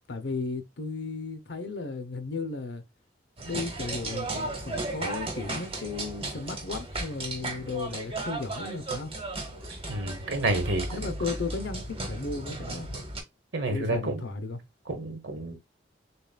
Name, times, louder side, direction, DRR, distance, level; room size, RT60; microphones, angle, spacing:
voice 1, 0.1-2.8 3.4-9.1 10.9-12.9 13.7-14.6, left 3 dB, 70° left, 0.7 m, -35 dB
sound 1, 3.4-13.2, right 2 dB, 30° right, 1.1 m, -35 dB
voice 2, 9.9-11.1 13.5-14.2 14.9-15.6, right 2 dB, 75° right, 1.2 m, -29 dB
6.8 x 2.4 x 2.2 m
head